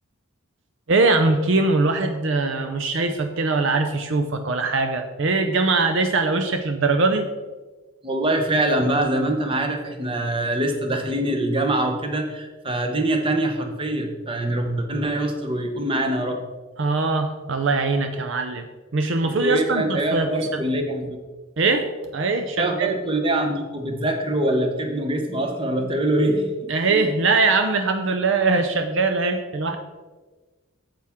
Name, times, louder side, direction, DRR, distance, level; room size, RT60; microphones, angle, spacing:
voice 1, 0.9-7.3 16.8-18.7 18.9-20.6 21.6-22.9 26.7-29.8, right 3 dB, 60° right, 7 dB, 0.6 m, -22 dB
voice 2, 8.0-16.4 19.4-21.2 22.6-27.1, right 1 dB, 25° right, 4 dB, 0.9 m, -24 dB
8.8 x 7.6 x 3.6 m, 1.3 s
head